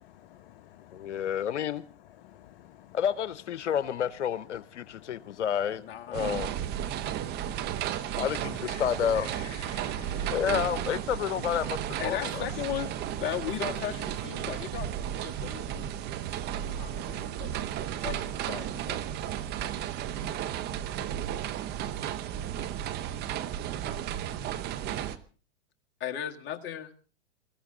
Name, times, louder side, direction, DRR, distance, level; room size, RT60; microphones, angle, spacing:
voice 1, 0.0-1.3 2.2-3.0 4.9-5.4 6.9-8.2 9.7-10.3, left 13 dB, 50° left, 1.1 m, -54 dB
voice 2, 0.9-1.8 2.9-5.8 6.1-6.5 8.1-11.8 12.0-12.5, left 9 dB, 90° left, 0.8 m, -30 dB
voice 3, 5.8-6.3 12.0-15.9 16.6-17.5 18.0-19.0 26.0-27.0, left 10 dB, 30° left, 1.8 m, -37 dB
sound 1, 6.1-25.2, right 10 dB, 30° right, 1.0 m, -34 dB
23.0 x 14.5 x 3.8 m
hypercardioid pair, 130°, 35 cm